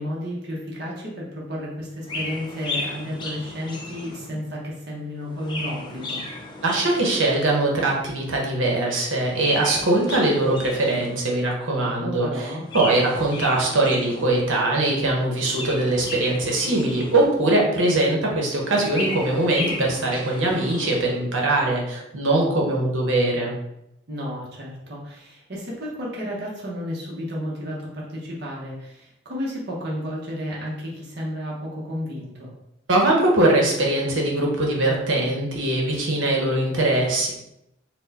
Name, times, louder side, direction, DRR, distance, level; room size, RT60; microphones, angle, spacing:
voice 1, 0.0-6.2 12.0-12.6 24.1-32.5, equal, 60° right, -4 dB, 0.9 m, -32 dB
Chirp tweet, 2.0-4.5 5.2-7.6 9.2-11.4 12.6-14.5 15.3-17.6 18.6-21.2, left 2 dB, 25° left, 0.6 m, -34 dB
voice 2, 6.6-12.5 12.7-23.6 32.9-37.3, right 2 dB, 80° right, -1 dB, 1.0 m, -21 dB
4.4 x 2.2 x 4.1 m, 0.84 s
head